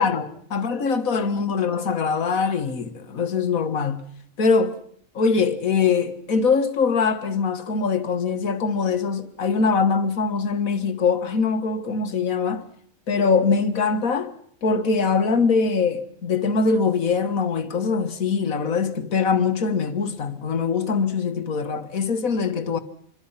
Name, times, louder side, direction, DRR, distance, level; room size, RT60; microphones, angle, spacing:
voice 1, 0.0-4.0 4.4-4.8 5.2-12.7 13.1-14.3 14.6-22.8, left 5 dB, 85° left, 1.9 m, -22 dB
26.5 x 22.5 x 5.7 m
omnidirectional pair, 1.4 m